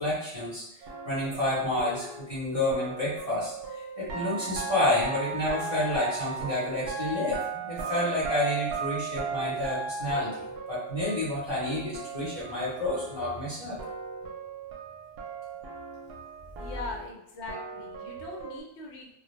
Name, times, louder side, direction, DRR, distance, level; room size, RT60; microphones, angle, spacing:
voice 1, 0.0-10.4 10.7-13.8, left 1 dB, 35° left, -10 dB, 0.8 m, -30 dB
sound 1, 0.8-13.5 13.8-18.6, right 5 dB, 65° right, 0.7 m, -37 dB
voice 2, 16.6-19.2, left 2 dB, 75° left, 0 dB, 0.9 m, -40 dB
2.2 x 2.1 x 3.0 m, 0.76 s
omnidirectional pair, 1.2 m